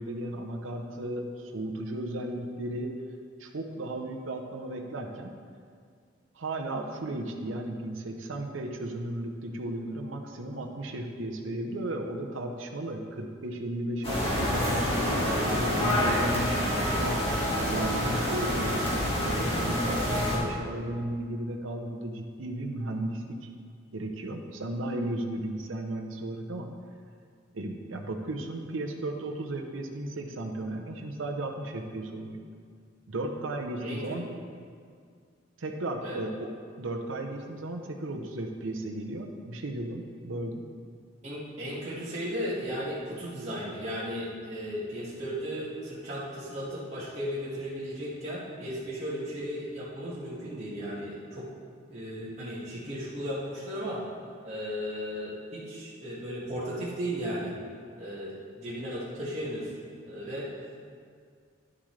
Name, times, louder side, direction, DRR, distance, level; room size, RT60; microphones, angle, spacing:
voice 1, 0.0-2.9 3.4-5.3 6.3-17.2 17.6-23.4 23.9-26.7 27.5-32.5 33.1-34.2 35.6-36.5 36.8-40.6, right 1 dB, 85° right, 2 dB, 0.8 m, -35 dB
sound 1, 14.0-20.4, equal, 30° left, 2.0 m, -27 dB
voice 2, 33.8-34.2 36.0-36.2 41.2-51.5 51.9-54.0 54.4-57.5 58.0-59.7 60.0-60.5, equal, 35° right, -10 dB, 1.7 m, -35 dB
11.0 x 7.5 x 3.2 m, 2.1 s
head